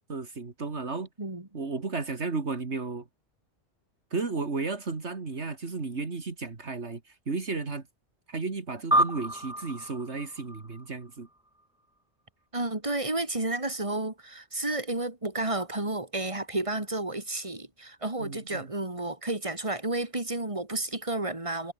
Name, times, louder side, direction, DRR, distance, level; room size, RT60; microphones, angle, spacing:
voice 1, 0.1-1.1 1.5-3.1 4.1-7.9 8.3-11.3 18.2-18.7, right 4 dB, 70° right, 2.6 m, -33 dB
sound 1, 8.9-11.6, right 1 dB, 5° right, 0.5 m, -29 dB
voice 2, 12.5-21.7, right 2 dB, 25° right, 3.4 m, -31 dB
omnidirectional pair, 1.2 m